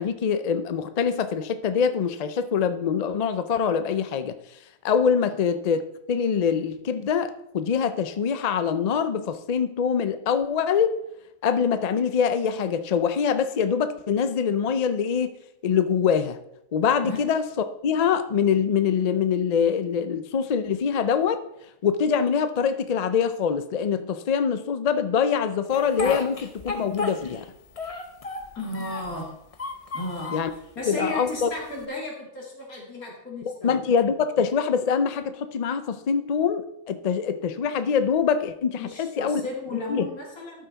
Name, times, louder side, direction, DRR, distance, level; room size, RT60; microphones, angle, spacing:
voice 1, 0.0-4.4 4.8-10.9 11.4-15.3 15.6-16.4 16.7-17.4 17.8-21.4 21.8-27.4 30.3-30.5 30.9-31.5 33.4-39.4 39.9-40.1, left 7 dB, 60° left, 10 dB, 0.4 m, -24 dB
Speech, 25.7-27.5 27.8-29.2 29.5-30.5 31.1-31.8, left 3 dB, 30° left, 0.7 m, -33 dB
voice 2, 28.5-29.3 29.9-30.3 30.8-33.8 38.7-40.7, left 2 dB, 90° left, -2 dB, 2.8 m, -34 dB
12.0 x 5.7 x 4.0 m, 0.79 s
omnidirectional pair, 1.5 m